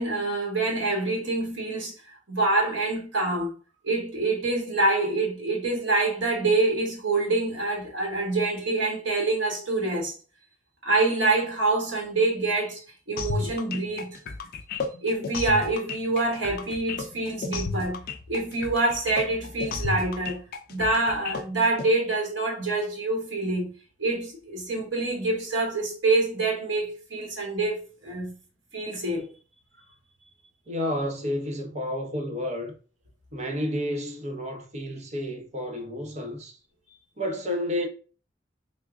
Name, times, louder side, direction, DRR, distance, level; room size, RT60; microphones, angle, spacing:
voice 1, 0.0-1.9 2.3-3.5 3.8-10.1 10.8-12.8 13.1-14.2 15.0-18.0 18.3-20.4 20.7-23.7 24.0-28.3 28.7-29.3, right 2 dB, 85° right, 1.1 m, -26 dB
sound 1, 13.2-21.9, left 4 dB, 50° left, 0.4 m, -33 dB
voice 2, 30.7-32.7 33.3-36.6 37.2-37.9, left 1 dB, 40° right, 0.7 m, -30 dB
3.5 x 2.1 x 3.5 m
head